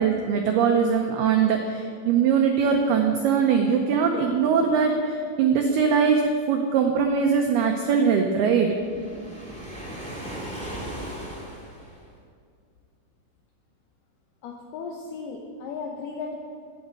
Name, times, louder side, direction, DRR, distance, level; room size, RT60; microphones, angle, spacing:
voice 1, 0.0-8.7, right 6 dB, 90° right, 3 dB, 2.2 m, -21 dB
Waves surf, 8.7-12.2, right 1 dB, 10° left, 0.4 m, -37 dB
voice 2, 14.4-16.4, left 4 dB, 75° left, 1 dB, 2.3 m, -35 dB
12.0 x 9.3 x 7.5 m, 2.2 s
omnidirectional pair, 5.6 m